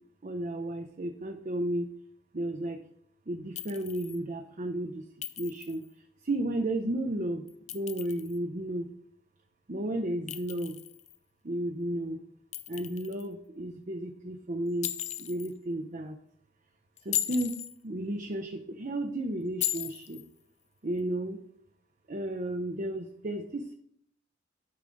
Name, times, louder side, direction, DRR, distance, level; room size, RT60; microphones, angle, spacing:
voice 1, 0.2-1.9 2.3-2.8 3.3-5.0 5.4-5.8 6.2-7.4 7.7-8.9 9.7-10.8 11.4-12.2 12.7-14.9 15.2-16.2 17.0-20.2 20.8-21.4 22.1-23.7, right 1 dB, 40° right, 5 dB, 0.7 m, -33 dB
Chink clink, 3.6-4.2 5.2-5.9 7.5-8.4 10.3-11.2 12.5-13.3 14.8-15.5 17.0-17.7 19.6-20.3, left 12 dB, 35° left, 0.4 m, -36 dB
11.5 x 4.9 x 3.9 m, 0.66 s
head